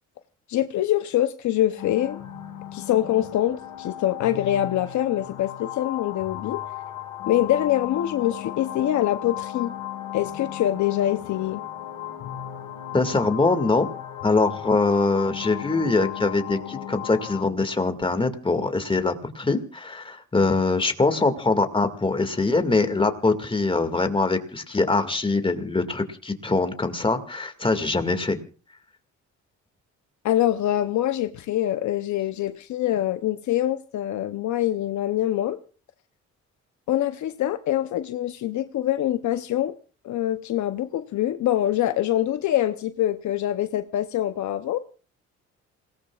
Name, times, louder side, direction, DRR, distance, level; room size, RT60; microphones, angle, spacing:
voice 1, 0.5-2.2 2.7-6.6 7.3-9.7 10.1-11.6 30.2-35.6 36.9-39.8 40.0-44.8, left 12 dB, 70° left, 0.8 m, -24 dB
sound 1, 1.8-17.4, left 12 dB, 85° left, 2.0 m, -35 dB
voice 2, 12.9-13.9 14.2-28.4, left 3 dB, 15° left, 2.1 m, -23 dB
28.0 x 18.0 x 2.4 m
cardioid pair, 90°, 30 cm